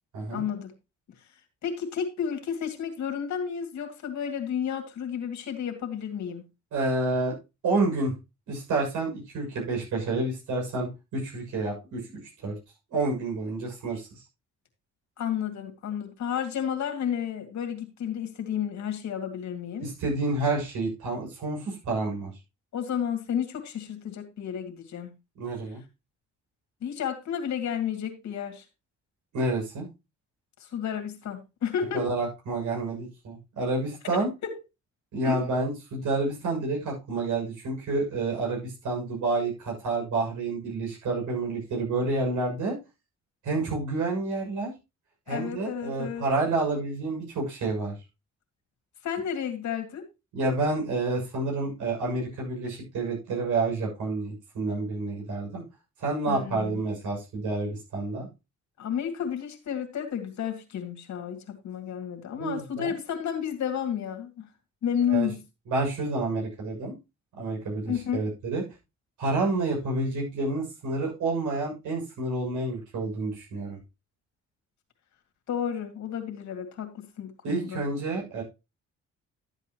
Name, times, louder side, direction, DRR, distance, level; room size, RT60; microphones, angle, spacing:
voice 1, 0.3-0.7 1.6-6.4 15.2-19.9 22.7-25.1 26.8-28.6 30.6-32.1 34.1-34.5 35.2-35.4 45.3-46.2 49.0-50.1 56.3-56.8 58.8-64.5 64.8-65.4 67.9-68.2 75.5-77.8, left 8 dB, 65° left, 5 dB, 2.4 m, -31 dB
voice 2, 6.7-7.4 7.6-8.1 8.5-12.6 12.9-14.2 19.8-22.3 25.4-25.8 29.3-29.9 31.9-34.3 35.1-42.7 43.4-44.7 45.3-47.9 50.3-55.6 56.0-58.3 62.3-63.0 65.1-65.3 65.7-66.9 67.3-68.6 69.2-73.8 77.4-78.4, right 3 dB, 75° right, -1 dB, 6.8 m, -29 dB
12.5 x 8.2 x 3.0 m, 0.26 s
cardioid pair, 90°, 30 cm